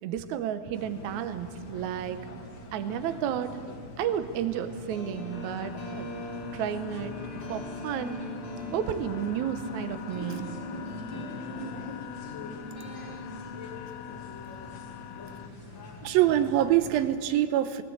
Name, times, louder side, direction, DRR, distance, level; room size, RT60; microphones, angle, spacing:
voice 1, 0.0-2.2 2.7-3.6 4.0-6.1 6.5-7.2 7.5-8.2 8.7-10.5, right 9 dB, 70° right, 9 dB, 2.0 m, -32 dB
sound 1, 0.7-17.1, left 2 dB, 40° left, 2.0 m, -44 dB
sound 2, 4.9-13.2, right 1 dB, 5° left, 4.7 m, -43 dB
sound 3, 5.3-15.5, left 10 dB, 85° left, 2.7 m, -42 dB
voice 2, 16.0-17.8, right 12 dB, 85° right, 10 dB, 2.6 m, -24 dB
20.0 x 18.0 x 8.0 m, 2.3 s
omnidirectional pair, 4.2 m